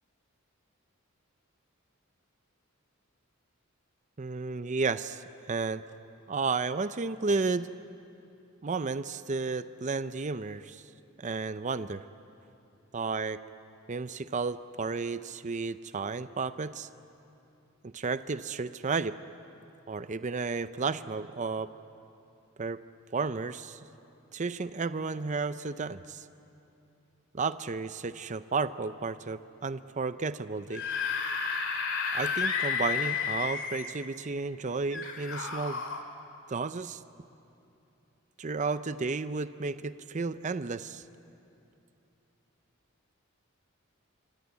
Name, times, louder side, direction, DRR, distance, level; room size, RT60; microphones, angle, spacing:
voice 1, 4.2-5.8 6.3-7.7 8.6-10.8 11.2-12.0 12.9-13.4 13.9-16.9 17.8-19.2 19.9-21.7 22.6-22.8 23.1-23.8 24.3-26.3 27.3-30.8 32.1-35.8 36.5-37.0 38.4-41.0, right 4 dB, 35° right, 13 dB, 0.6 m, -32 dB
Screaming / Screech, 30.6-34.0 34.9-36.0, left 6 dB, 60° left, 2.6 m, -31 dB
26.0 x 25.0 x 8.4 m, 2.7 s
head